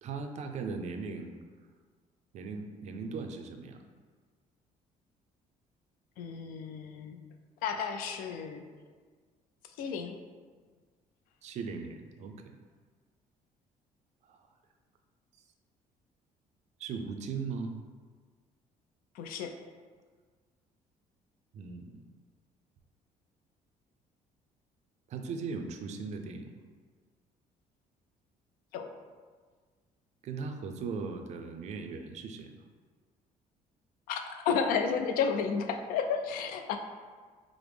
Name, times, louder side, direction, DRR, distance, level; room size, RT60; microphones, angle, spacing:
voice 1, 0.0-1.3 2.3-3.8 11.4-12.5 14.2-14.4 16.8-17.7 21.5-22.0 25.1-26.6 30.2-32.6, right 4 dB, 55° right, 5 dB, 0.4 m, -38 dB
voice 2, 6.2-7.2 7.6-8.6 9.8-10.2 19.1-19.6 28.7-28.9 34.1-36.8, left 6 dB, 85° left, 6 dB, 0.4 m, -32 dB
4.8 x 2.0 x 3.4 m, 1.5 s
cardioid pair, 145°, 14 cm